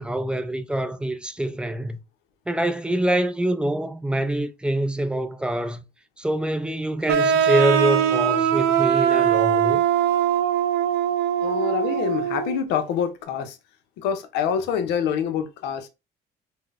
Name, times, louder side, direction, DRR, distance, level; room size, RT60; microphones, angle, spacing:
voice 1, 0.0-2.0 2.5-5.8 6.2-9.8, right 1 dB, 5° right, 0.3 m, -25 dB
sound 1, 7.1-12.6, right 9 dB, 85° right, 0.4 m, -21 dB
voice 2, 11.4-13.6 14.0-15.9, left 8 dB, 90° left, 0.5 m, -26 dB
3.7 x 2.0 x 2.4 m
cardioid pair, 110°, 17 cm